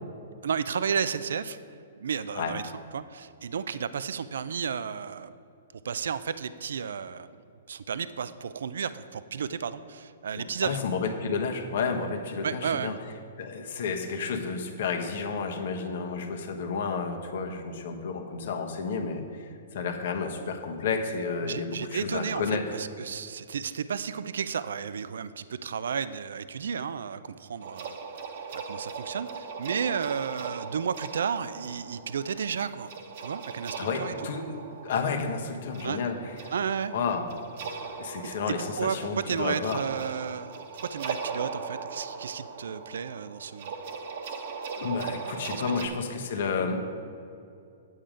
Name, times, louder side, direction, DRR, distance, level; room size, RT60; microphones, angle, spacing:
voice 1, 0.4-1.6 2.0-2.6 2.9-5.3 5.8-7.3 7.7-10.8 12.4-12.9 21.4-28.0 28.5-32.9 33.2-34.1 35.8-36.0 36.5-37.0 38.6-43.7 45.5-45.9, right 7 dB, 75° right, 14 dB, 0.4 m, -32 dB
voice 2, 10.6-12.9 13.4-22.7 33.8-34.4 34.8-36.3 36.9-37.3 38.0-39.8 44.8-46.8, left 5 dB, 65° left, 4 dB, 1.2 m, -31 dB
sound 1, 27.6-45.9, right 5 dB, 60° right, 1.1 m, -39 dB
8.6 x 7.5 x 5.1 m, 2.5 s
hypercardioid pair, 130°, 0 cm